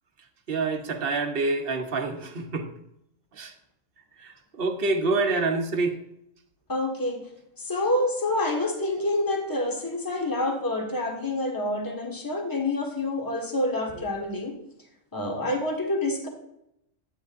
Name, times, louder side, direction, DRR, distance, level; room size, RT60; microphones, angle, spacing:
voice 1, 0.5-2.6 3.4-3.5 4.6-5.9, right 3 dB, 45° right, 5 dB, 1.1 m, -26 dB
voice 2, 6.7-7.2 7.6-14.5 15.1-16.3, left 1 dB, 15° left, 1 dB, 1.4 m, -27 dB
11.0 x 9.0 x 2.6 m, 0.81 s
omnidirectional pair, 1.4 m